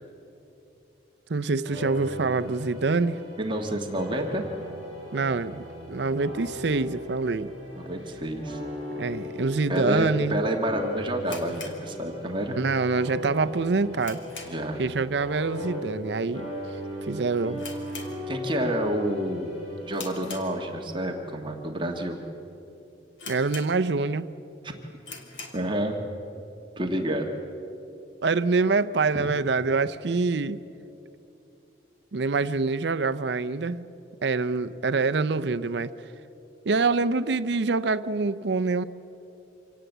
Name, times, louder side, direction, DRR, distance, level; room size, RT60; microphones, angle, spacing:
voice 1, 1.3-3.2 5.1-7.5 9.0-10.4 12.6-14.2 14.8-16.5 17.1-17.6 23.3-24.3 28.2-30.6 32.1-33.8 34.2-35.9 36.7-38.8, right 4 dB, 65° right, 0.6 m, -25 dB
sound 1, 1.6-16.1 16.3-20.8, left 1 dB, 35° left, 7.1 m, -37 dB
voice 2, 3.4-4.5 7.8-8.6 9.7-12.6 14.4-14.8 18.3-19.6 19.8-22.2 24.6-24.7 25.5-26.0 26.8-27.3 29.1-29.3, right 1 dB, 25° right, 1.5 m, -29 dB
sound 2, 11.2-12.6 12.9-13.0 13.5-14.8 15.1-15.4 15.7-15.8 16.5-16.8 17.0-17.1 17.5-18.7 19.1-19.4 19.9-21.0 21.6-21.7 22.3-22.4 22.6-22.7 23.2-24.1 24.5-24.6 25.0-25.7, left 4 dB, 85° left, 2.7 m, -42 dB
25.5 x 18.0 x 8.1 m
head